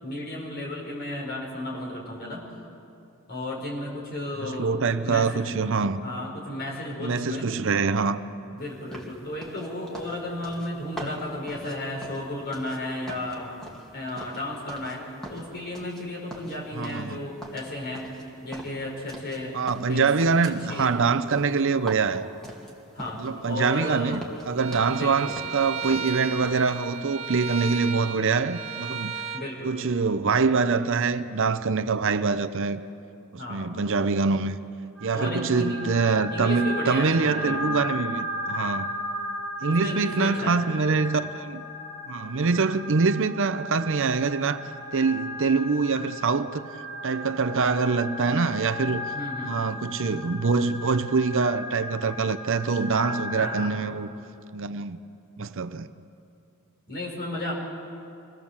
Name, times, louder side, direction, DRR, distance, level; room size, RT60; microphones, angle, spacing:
voice 1, 0.0-2.5 3.3-4.7 5.0-5.5 6.0-7.5 8.5-13.5 13.9-15.0 15.3-18.0 18.4-20.1 20.4-20.9 22.9-24.2 24.9-25.4 29.3-29.7 33.4-33.7 35.1-35.8 36.3-37.6 39.7-40.6 49.1-49.6 53.4-53.9 56.9-57.5, left 1 dB, 45° left, 5.1 m, -34 dB
voice 2, 4.4-6.0 7.0-8.2 16.7-17.2 19.5-22.3 23.2-29.1 29.6-32.8 33.3-34.6 35.0-38.9 39.6-41.6 42.1-44.6 44.9-46.7 47.0-49.1 49.4-54.1 54.5-55.0 55.4-55.9, right 4 dB, 60° right, 0.7 m, -24 dB
sound 1, 8.9-12.8 13.1-15.0 15.2-16.0 16.3-17.1 17.4-19.4 19.7-23.3 23.6-23.8 24.1-25.0 25.3-26.1 26.4-26.6, right 1 dB, ahead, 2.5 m, -42 dB
Bowed string instrument, 24.6-29.4, right 6 dB, 30° right, 1.5 m, -35 dB
sound 2, 35.0-53.6, left 1 dB, 85° left, 7.2 m, -35 dB
25.0 x 18.0 x 7.2 m
head